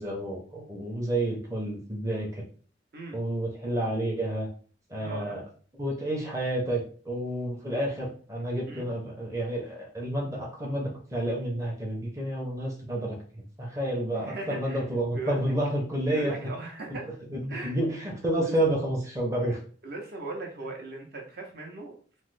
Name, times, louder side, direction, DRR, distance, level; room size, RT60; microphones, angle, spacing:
voice 1, 0.0-2.4 3.1-4.5 4.9-5.4 5.8-16.4 16.9-17.0 17.3-19.6, right 1 dB, 15° right, -2 dB, 0.6 m, -30 dB
voice 2, 5.0-5.4 8.7-8.8 14.2-14.8 15.1-15.5 16.1-17.0 17.5-17.7 18.4-18.5 19.8-22.2, right 2 dB, 55° right, 0 dB, 0.7 m, -38 dB
3.1 x 2.0 x 3.1 m, 0.43 s
head